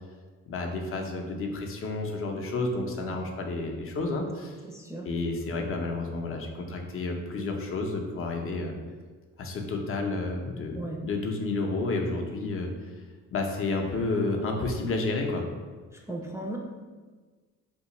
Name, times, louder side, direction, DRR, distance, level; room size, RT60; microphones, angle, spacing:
voice 1, 0.5-4.6 5.0-8.7 9.4-12.7 13.3-15.4, left 3 dB, 45° left, 2 dB, 0.6 m, -30 dB
voice 2, 4.7-5.1 10.7-11.0 16.1-16.6, right 1 dB, 10° right, -2 dB, 0.3 m, -36 dB
2.8 x 2.3 x 3.9 m, 1.4 s
cardioid pair, 90°, 30 cm